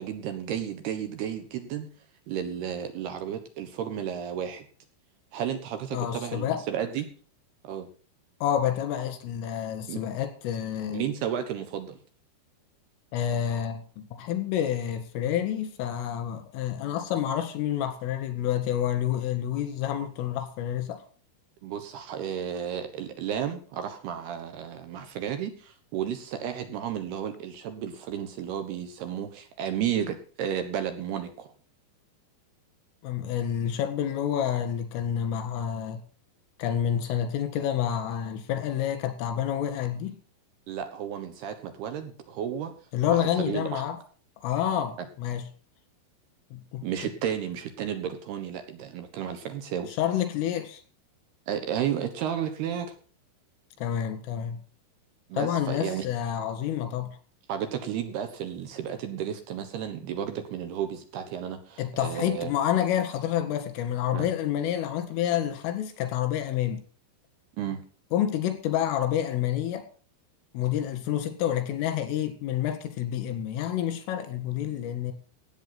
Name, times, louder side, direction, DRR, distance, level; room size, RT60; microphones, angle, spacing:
voice 1, 0.0-1.9 2.3-4.6 5.3-7.1 7.6-7.9 9.9-10.0 10.9-12.0 21.6-31.5 40.7-42.7 43.0-43.8 46.8-50.0 51.5-52.9 55.3-56.1 57.5-62.5 64.1-64.3 67.6-67.8, right 9 dB, 65° right, 2.9 m, -33 dB
voice 2, 5.9-6.6 8.4-11.1 13.1-21.0 33.0-36.0 36.6-40.2 42.9-44.0 44.4-45.4 46.5-46.8 50.0-50.8 53.8-54.6 55.3-57.1 61.8-66.8 68.1-69.8 70.5-75.1, left 10 dB, 85° left, 4.5 m, -28 dB
16.0 x 8.3 x 5.8 m
omnidirectional pair, 5.6 m